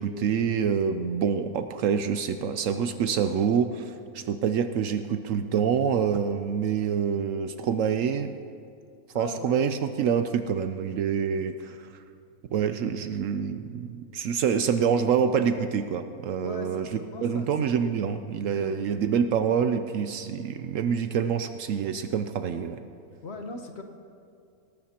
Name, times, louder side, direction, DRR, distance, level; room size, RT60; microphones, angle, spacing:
voice 1, 0.0-8.3 9.1-11.9 12.5-16.9 17.2-22.8, right 7 dB, 70° right, 9 dB, 0.9 m, -26 dB
voice 2, 9.1-9.5 14.2-14.3 16.4-17.5 18.6-18.8 23.2-23.8, left 3 dB, 50° left, 4 dB, 1.1 m, -39 dB
18.0 x 13.5 x 2.9 m, 2.4 s
omnidirectional pair, 1.6 m